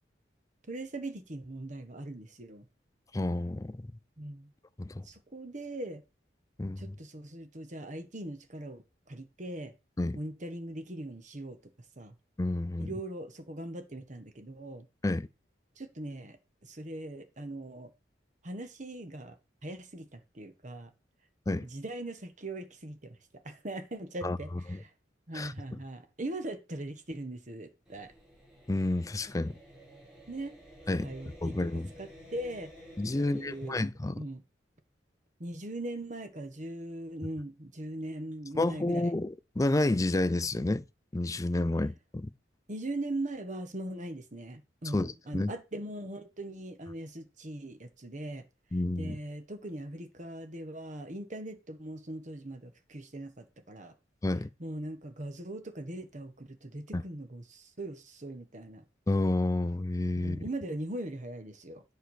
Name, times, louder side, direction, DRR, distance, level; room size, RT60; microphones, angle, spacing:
voice 1, 0.7-2.7 4.2-4.5 5.0-6.0 6.8-9.7 10.1-11.6 12.0-12.2 12.8-14.9 15.8-17.9 18.4-19.4 19.6-20.9 21.6-23.2 23.4-24.9 25.3-28.1 30.3-30.6 30.9-31.7 32.0-32.7 33.2-33.8 34.1-34.4 35.4-39.1 42.7-48.4 49.0-53.9 54.6-58.8 60.1-61.8, right 1 dB, 40° right, 1.3 m, -40 dB
voice 2, 3.1-3.9 4.8-5.1 6.6-6.9 10.0-10.2 12.4-12.9 15.0-15.3 21.5-21.7 24.2-24.4 24.7-24.8 25.3-25.8 28.7-29.6 30.9-31.1 31.4-31.9 33.0-34.2 38.6-40.8 41.1-42.3 44.9-45.5 48.7-49.2 54.2-54.5 56.9-57.0 59.1-60.4, left 2 dB, 20° left, 0.4 m, -30 dB
sound 1, 27.9-33.7, equal, 5° right, 5.5 m, -52 dB
10.0 x 4.5 x 6.5 m
head